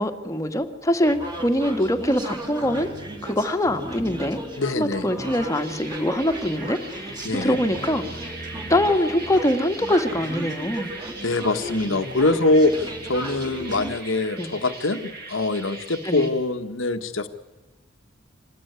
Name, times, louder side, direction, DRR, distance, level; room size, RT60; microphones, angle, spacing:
voice 1, 0.0-2.9 3.2-4.4 4.8-8.0 8.7-10.9 14.4-14.5 16.0-16.3, left 1 dB, 15° left, 6 dB, 1.8 m, -23 dB
sound 1, 1.1-13.9, right 1 dB, 25° right, 4.1 m, -35 dB
voice 2, 4.6-5.1 7.2-7.6 11.2-17.3, left 2 dB, 85° left, 8 dB, 1.5 m, -23 dB
sound 2, 5.2-16.3, right 3 dB, 55° right, 6.3 m, -40 dB
26.5 x 20.0 x 9.7 m, 1.2 s
head